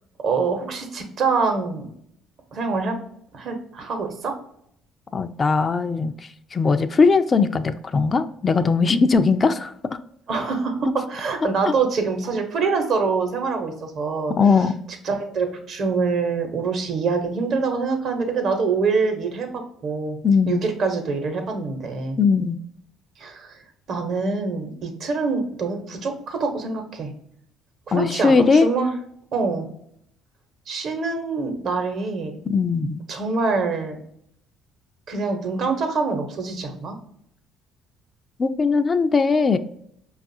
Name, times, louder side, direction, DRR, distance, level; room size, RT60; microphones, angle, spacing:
voice 1, 0.2-1.9 2.5-3.0 3.3-4.3 10.3-14.3 15.0-20.2 20.5-22.2 23.2-23.6 23.9-27.1 27.9-28.9 29.3-29.7 30.7-32.3 33.1-34.0 35.1-37.0, right 4 dB, 60° right, 5 dB, 0.9 m, -25 dB
voice 2, 5.1-6.1 6.5-9.7 11.7-11.8 14.3-14.7 20.2-20.6 22.2-22.6 27.9-28.7 32.5-33.0 38.4-39.6, left 4 dB, 35° left, 10 dB, 0.3 m, -19 dB
5.2 x 2.4 x 2.6 m, 0.69 s
supercardioid pair, 65°, 0 cm